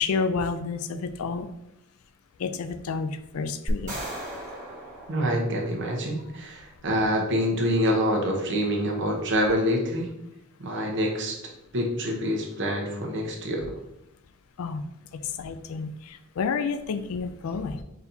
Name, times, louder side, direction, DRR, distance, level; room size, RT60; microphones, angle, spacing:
voice 1, 0.0-1.5 2.4-4.0 14.6-14.8 15.1-17.8, left 5 dB, 70° left, 11 dB, 0.4 m, -30 dB
sound 1, 3.7-6.1, equal, 35° right, 1.5 m, -35 dB
voice 2, 5.1-10.1 10.6-13.8, equal, 55° right, 1 dB, 0.9 m, -26 dB
4.2 x 4.0 x 2.7 m, 0.85 s
head